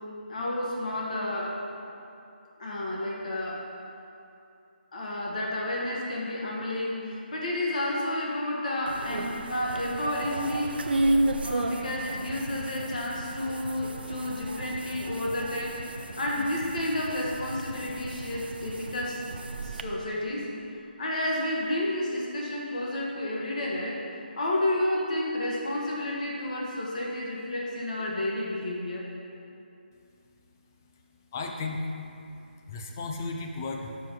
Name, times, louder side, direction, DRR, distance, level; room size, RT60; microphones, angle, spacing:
voice 1, 0.3-1.6 2.6-3.7 4.9-10.9 11.4-19.2 19.6-20.5 21.0-24.0 24.3-29.1, left 1 dB, 45° left, -3 dB, 1.5 m, -31 dB
sound 1, 8.9-19.8, right 2 dB, 70° right, 0.6 m, -33 dB
voice 2, 30.5-32.0 32.4-34.1, left 3 dB, 20° left, 2 dB, 0.4 m, -36 dB
7.3 x 6.3 x 4.6 m, 2.7 s
hypercardioid pair, 170°, 6 cm